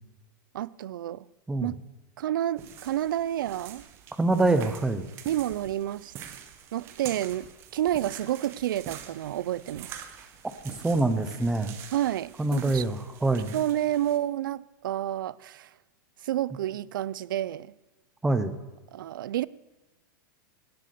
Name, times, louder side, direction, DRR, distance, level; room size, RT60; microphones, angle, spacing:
voice 1, 0.5-1.3 1.6-1.7 2.2-3.8 5.2-6.1 6.7-10.0 11.9-12.8 13.5-15.7 16.2-17.7 18.9-19.5, right 12 dB, 70° right, 0.5 m, -30 dB
sound 1, 2.6-14.2, right 9 dB, 20° right, 0.9 m, -45 dB
voice 2, 4.2-5.1 10.8-11.7 12.4-13.6 18.2-18.5, right 2 dB, 5° right, 0.6 m, -25 dB
17.5 x 7.8 x 6.7 m
supercardioid pair, 175°, 11 cm